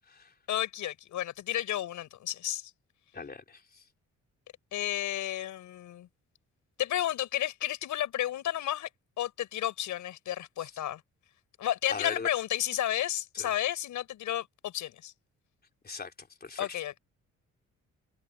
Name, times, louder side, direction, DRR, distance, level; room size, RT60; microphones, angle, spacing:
voice 1, 0.5-2.7 4.7-6.1 6.8-8.9 9.2-11.0 11.6-15.1 16.6-16.9, left 12 dB, 80° left, 5.6 m, -32 dB
voice 2, 3.1-3.8 10.6-10.7 11.9-12.3 13.4-13.5 15.8-16.8, left 4 dB, 30° left, 3.7 m, -40 dB
cardioid pair, 90°, 30 cm